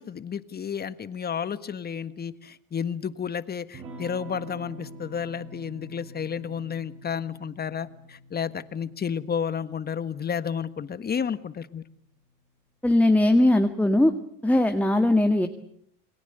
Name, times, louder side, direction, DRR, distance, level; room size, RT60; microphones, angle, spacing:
voice 1, 0.0-11.8, left 7 dB, 30° left, 13 dB, 1.6 m, -31 dB
Electric guitar / Strum, 3.7-12.0, right 1 dB, 45° right, 7.6 m, -46 dB
voice 2, 12.8-14.1 14.4-15.5, left 1 dB, 5° left, 6 dB, 1.8 m, -20 dB
29.5 x 21.0 x 8.1 m, 0.69 s
supercardioid pair, 100°, 30 cm